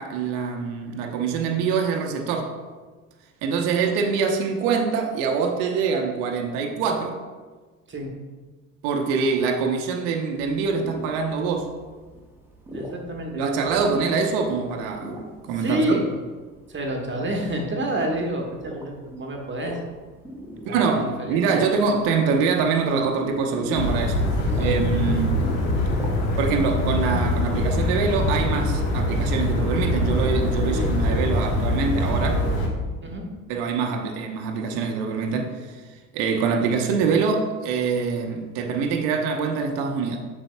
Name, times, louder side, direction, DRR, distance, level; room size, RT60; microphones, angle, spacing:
voice 1, 0.0-2.6 3.4-7.2 8.8-11.7 13.3-16.0 20.7-24.3 24.6-25.5 26.4-32.5 33.5-35.8 36.1-40.2, right 5 dB, 60° right, 3 dB, 0.9 m, -24 dB
sound 1, 10.4-26.5, right 1 dB, 5° right, 1.1 m, -40 dB
voice 2, 12.7-13.4 13.7-13.8 15.6-16.1 16.7-19.8 20.5-21.6 24.4-24.8 30.7-30.9 33.0-33.2, right 1 dB, 25° right, 1 dB, 1.3 m, -28 dB
sound 2, 23.8-32.7, left 1 dB, 55° left, 1.4 m, -23 dB
7.8 x 6.1 x 2.2 m, 1.4 s
figure-of-eight pair, 55°, 43 cm